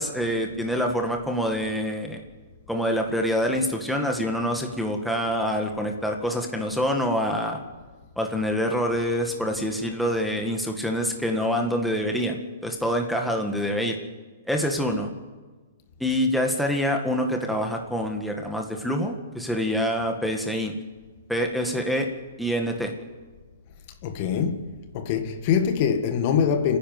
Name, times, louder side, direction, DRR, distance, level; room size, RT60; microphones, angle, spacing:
voice 1, 0.0-2.2 2.7-7.6 8.2-14.0 14.5-15.1 16.0-20.8 21.3-22.1 22.4-22.9, equal, ahead, 1.8 m, -26 dB
voice 2, 24.0-26.8, left 7 dB, 40° left, 1.7 m, -24 dB
29.0 x 10.5 x 9.6 m
hypercardioid pair, 150°, 0 cm